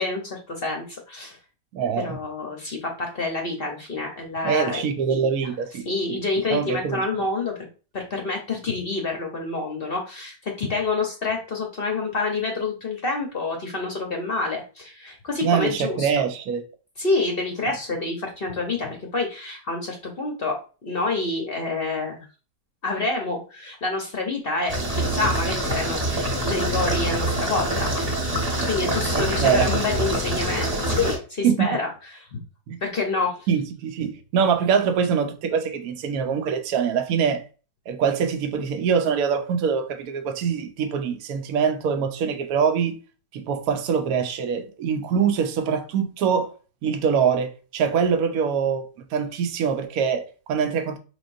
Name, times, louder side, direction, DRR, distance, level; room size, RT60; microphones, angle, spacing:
voice 1, 0.0-1.4 2.0-4.8 5.1-5.3 5.8-7.5 7.9-16.1 17.0-20.6 20.8-22.2 22.8-27.9 28.6-32.3 32.8-33.5, left 3 dB, 50° left, 0.7 m, -27 dB
voice 2, 1.7-2.2 4.4-6.2 6.5-7.1 15.4-16.6 29.2-29.7 31.4-31.7 32.7-32.8 33.5-37.4 37.9-43.0 43.3-46.5 46.8-48.8 49.1-51.0, right 7 dB, 65° right, 1.0 m, -24 dB
sound 1, 24.7-31.2, right 1 dB, 25° right, 1.3 m, -25 dB
5.1 x 3.4 x 2.5 m
omnidirectional pair, 1.9 m